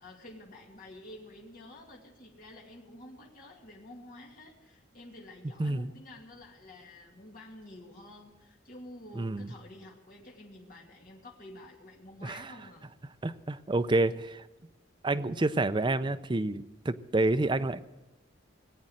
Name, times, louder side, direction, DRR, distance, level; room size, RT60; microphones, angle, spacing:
voice 1, 0.0-12.9, left 1 dB, 45° left, -1 dB, 2.4 m, -50 dB
voice 2, 5.6-5.9 9.2-9.5 12.2-12.5 13.2-14.4 15.0-17.8, right 2 dB, 25° right, 10 dB, 0.5 m, -28 dB
19.0 x 8.6 x 7.8 m, 1.0 s
head